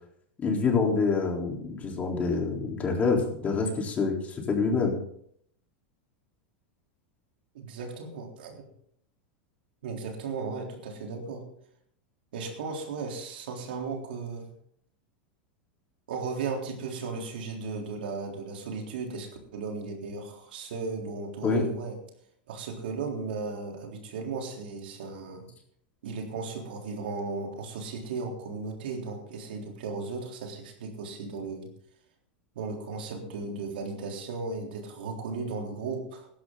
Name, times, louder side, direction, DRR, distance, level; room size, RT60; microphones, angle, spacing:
voice 1, 0.4-5.0 21.4-21.6, left 4 dB, 25° left, 0 dB, 3.9 m, -26 dB
voice 2, 7.5-8.7 9.8-11.4 12.3-14.5 16.1-22.0 22.5-25.5 26.0-31.7 32.6-36.3, right 4 dB, 80° right, 2 dB, 3.7 m, -36 dB
16.0 x 12.0 x 3.9 m, 0.67 s
hypercardioid pair, 115°, 5 cm